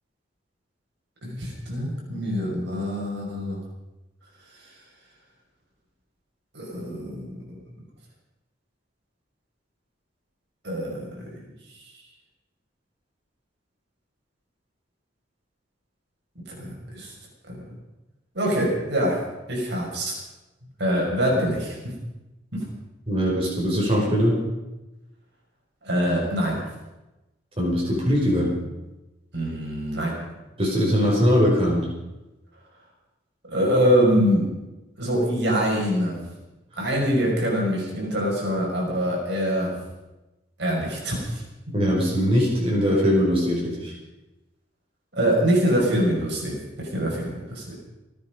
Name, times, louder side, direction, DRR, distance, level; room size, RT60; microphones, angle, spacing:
voice 1, 1.2-3.6 6.5-7.4 10.6-11.4 16.5-17.1 17.5-17.6 18.3-19.2 19.5-20.1 20.8-21.9 22.5-22.6 25.8-26.6 29.3-30.1 33.5-34.5 35.0-36.2 36.8-39.8 40.6-41.4 45.1-47.7, equal, 65° right, -2 dB, 5.5 m, -24 dB
voice 2, 23.1-24.4 27.6-28.5 30.6-31.9 41.7-43.9, equal, 30° right, -4 dB, 5.3 m, -21 dB
28.0 x 9.4 x 5.3 m, 1.0 s
head